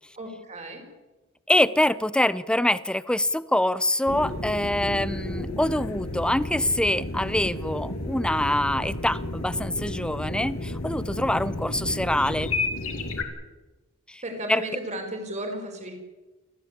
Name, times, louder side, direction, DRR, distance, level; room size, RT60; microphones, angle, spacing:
voice 1, 0.2-0.8 14.2-15.9, right 1 dB, 35° right, 4 dB, 5.1 m, -34 dB
voice 2, 1.5-12.5 14.1-14.2 14.5-14.6, left 1 dB, 5° left, 16 dB, 0.6 m, -25 dB
sound 1, 4.1-13.2, left 2 dB, 70° left, 2.8 m, -32 dB
29.0 x 14.0 x 8.3 m, 1.1 s
head